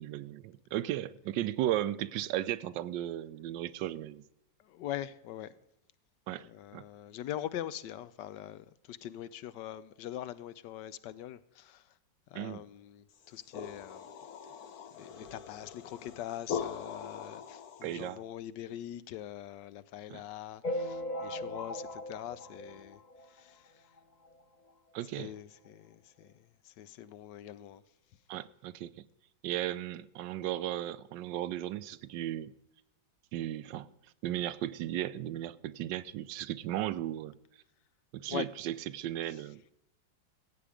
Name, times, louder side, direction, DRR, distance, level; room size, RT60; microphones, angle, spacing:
voice 1, 0.0-4.2 6.3-6.5 6.7-6.8 12.3-12.6 17.8-18.2 20.1-20.2 24.9-25.3 28.3-28.9 29.4-32.5 33.3-33.9 34.2-37.4 38.1-39.6, right 13 dB, 80° right, 1.3 m, -35 dB
voice 2, 4.6-5.6 6.3-11.9 12.3-14.1 14.9-23.9 25.1-27.8 38.3-38.5, left 12 dB, 75° left, 1.2 m, -43 dB
sound 1, 13.2-18.1, left 7 dB, 60° left, 1.3 m, -42 dB
sound 2, 20.6-23.5 24.0-24.1 24.2-24.4 24.7-24.8 25.7-25.8 26.2-26.3, left 1 dB, 35° left, 0.8 m, -38 dB
15.0 x 8.6 x 5.0 m
omnidirectional pair, 2.0 m